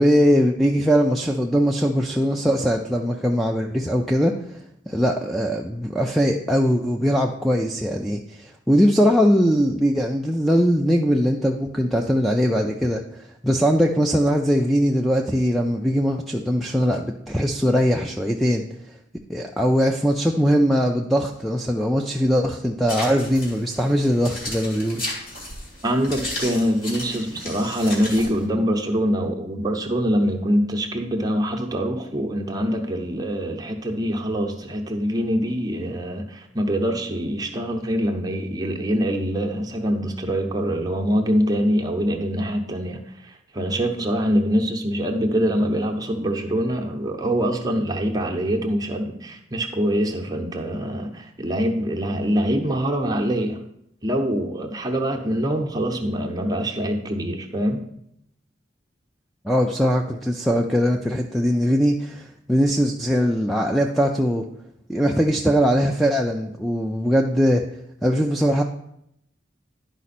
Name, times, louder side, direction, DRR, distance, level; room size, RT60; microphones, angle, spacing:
voice 1, 0.0-4.3 4.9-18.6 19.3-25.0 59.4-64.5 64.9-67.6 68.0-68.6, equal, ahead, 2 dB, 0.4 m, -21 dB
sound 1, 22.9-28.4, left 1 dB, 50° left, 2.4 m, -34 dB
voice 2, 25.8-53.6 54.0-57.9, equal, 20° right, 2 dB, 0.9 m, -24 dB
11.0 x 5.1 x 4.2 m, 0.77 s
head